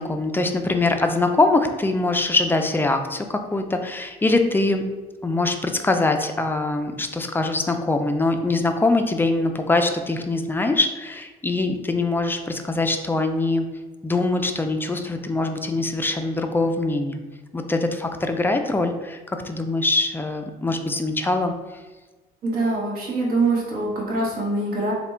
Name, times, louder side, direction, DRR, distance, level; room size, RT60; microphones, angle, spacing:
voice 1, 0.0-4.8 5.2-13.7 14.0-17.2 17.5-19.2 19.4-21.5, left 2 dB, 10° left, 5 dB, 0.3 m, -23 dB
voice 2, 22.4-24.9, right 2 dB, 60° right, -2 dB, 1.1 m, -24 dB
3.4 x 2.2 x 4.3 m, 1.2 s
cardioid pair, 110°, 17 cm